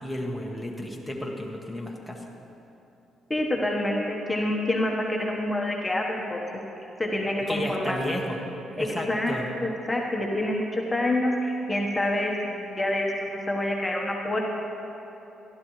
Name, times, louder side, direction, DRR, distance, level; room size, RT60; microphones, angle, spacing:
voice 1, 0.0-2.2 7.5-8.4 8.8-9.4, equal, 5° right, 0 dB, 1.3 m, -32 dB
voice 2, 3.3-6.4 7.0-8.0 8.8-14.4, left 1 dB, 15° left, -1 dB, 1.2 m, -27 dB
15.5 x 12.0 x 3.2 m, 3.0 s
cardioid pair, 90°, 0 cm